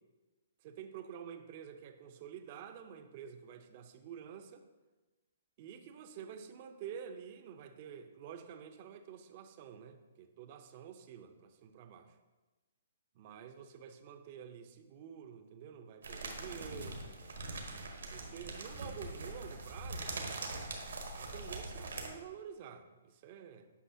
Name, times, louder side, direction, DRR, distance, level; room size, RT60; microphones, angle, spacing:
voice 1, 0.6-4.6 5.6-12.2 13.1-17.0 18.1-20.5 21.1-23.7, right 8 dB, 45° right, 8 dB, 0.6 m, -49 dB
sound 1, 16.0-22.1, right 2 dB, 75° right, 1.3 m, -42 dB
8.3 x 5.4 x 2.8 m, 1.2 s
hypercardioid pair, 130°, 0 cm